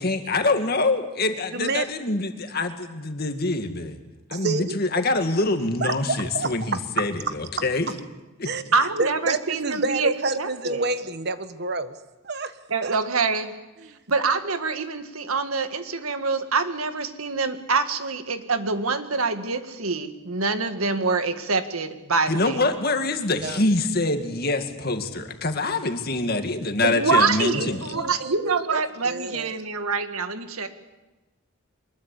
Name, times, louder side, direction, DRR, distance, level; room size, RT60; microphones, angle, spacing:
voice 1, 0.0-4.0 4.3-7.9 8.4-8.5 22.3-27.9, left 2 dB, 45° left, 7 dB, 2.1 m, -25 dB
voice 2, 1.5-1.9 4.3-4.7 5.8-6.8 7.3-7.4 8.4-12.0 12.2-12.5 12.8-13.0 13.8-13.9 23.3-23.6 27.5-29.6, right 3 dB, 50° right, 11 dB, 1.3 m, -29 dB
voice 3, 8.7-10.9 12.7-13.5 14.1-22.6 26.8-30.7, right 4 dB, 90° right, 8 dB, 1.9 m, -25 dB
23.5 x 21.5 x 8.5 m, 1.1 s
head